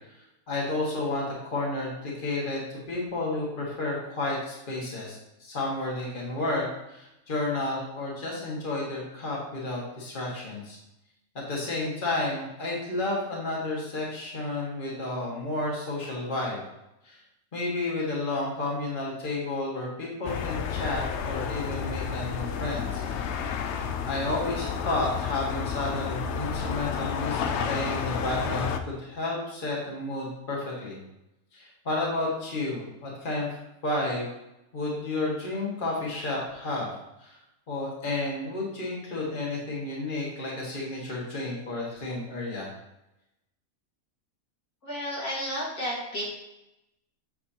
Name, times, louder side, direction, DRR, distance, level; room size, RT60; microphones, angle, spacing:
voice 1, 0.5-10.8 11.4-16.6 17.0-17.2 17.5-23.0 24.1-31.0 31.5-33.6 33.8-34.3 34.7-36.9 37.2-37.4 37.7-42.7, left 2 dB, 35° left, -4 dB, 1.9 m, -31 dB
sound 1, 20.2-28.8, left 7 dB, 60° left, 0.8 m, -31 dB
voice 2, 44.8-46.2, equal, 85° left, -6 dB, 2.7 m, -32 dB
7.3 x 7.2 x 2.9 m, 0.90 s
omnidirectional pair, 1.5 m